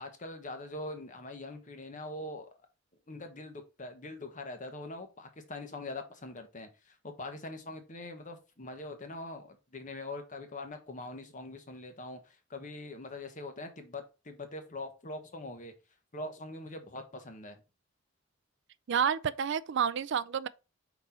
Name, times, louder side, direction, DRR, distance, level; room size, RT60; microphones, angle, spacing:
voice 1, 0.0-2.5 3.1-15.7 16.1-17.6, left 2 dB, 40° left, 1.2 m, -43 dB
voice 2, 18.9-20.5, right 7 dB, 65° right, 0.4 m, -29 dB
5.4 x 4.1 x 4.3 m
head